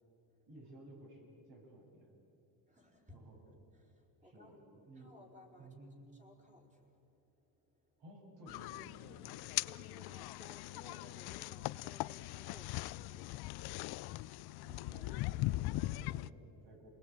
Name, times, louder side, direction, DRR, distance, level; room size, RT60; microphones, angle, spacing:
voice 1, 0.5-2.1 3.1-3.4 4.2-4.5 4.8-5.1 5.6-5.9 8.0-9.2 14.6-16.9, right 1 dB, 50° right, 0 dB, 7.9 m, -55 dB
voice 2, 2.7-3.2 3.7-4.6 4.9-5.8 6.2-7.8 9.6-14.2, left 1 dB, 15° right, 1 dB, 4.3 m, -60 dB
sound 1, 8.5-16.3, left 18 dB, 55° left, 0.5 m, -40 dB
29.0 x 19.5 x 9.0 m, 2.7 s
cardioid pair, 130°, 48 cm